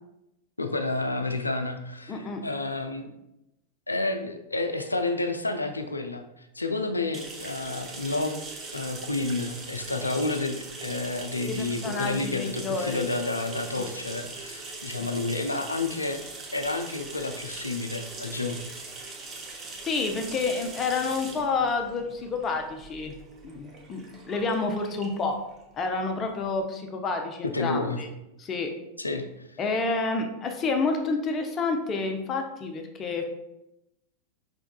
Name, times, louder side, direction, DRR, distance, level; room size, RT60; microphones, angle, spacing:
voice 1, 0.6-3.1 3.9-8.5 8.7-16.2 16.5-18.6 27.4-28.0 29.0-29.6, left 2 dB, 80° left, 6 dB, 0.4 m, -30 dB
voice 2, 2.1-2.4 11.4-13.1 13.8-13.9 15.0-15.1 19.8-23.1 23.4-25.4 25.7-28.1 28.4-28.7 29.6-33.2, left 4 dB, 25° left, 4 dB, 0.6 m, -29 dB
sound 1, 7.1-26.6, right 3 dB, 25° right, 0.7 m, -41 dB
5.1 x 3.5 x 2.2 m, 0.88 s
figure-of-eight pair, 90°, 0 cm